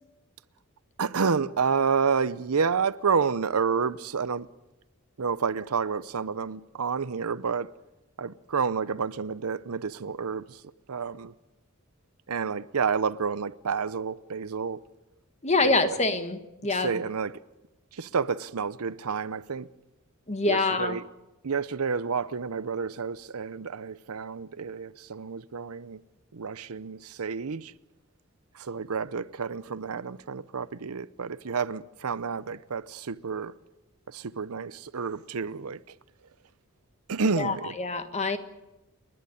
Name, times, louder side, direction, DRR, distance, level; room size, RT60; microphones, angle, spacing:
voice 1, 1.0-4.5 5.2-7.7 8.2-10.6 10.9-11.3 12.3-14.8 15.6-16.0 16.7-17.4 17.9-19.7 20.5-21.0 21.4-26.0 26.3-27.7 28.5-33.5 34.1-36.0 37.1-37.7, right 5 dB, 85° right, 0.7 m, -29 dB
voice 2, 15.4-17.0 20.3-21.0 37.4-38.4, left 3 dB, 30° left, 1.6 m, -26 dB
30.0 x 11.0 x 9.7 m
head